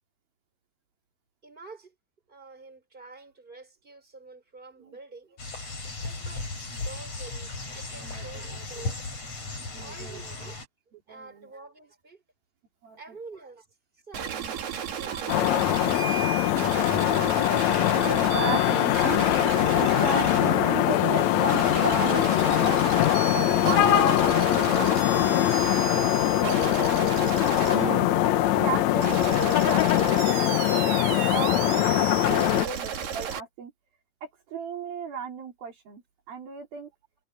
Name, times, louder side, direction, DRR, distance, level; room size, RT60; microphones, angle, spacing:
voice 1, 1.4-1.9 2.3-5.4 6.0-6.5 6.8-9.1 9.8-10.6 11.1-12.2 13.0-13.7 13.9-14.4 14.6-16.1, right 3 dB, 10° right, 5.5 m, -47 dB
sound 1, 5.4-10.7, left 3 dB, 40° left, 7.9 m, -36 dB
voice 2, 7.9-8.4 9.7-10.2 11.1-11.5 12.8-13.0 14.2-15.6 18.0-19.3 19.8-22.8 23.1-28.1 28.6-30.2 30.5-33.7 34.2-36.0 36.3-36.9, right 5 dB, 65° right, 5.0 m, -35 dB
sound 2, 14.1-33.4, right 8 dB, 85° right, 4.9 m, -34 dB
sound 3, 15.3-32.7, left 13 dB, 85° left, 1.6 m, -22 dB
omnidirectional pair, 4.5 m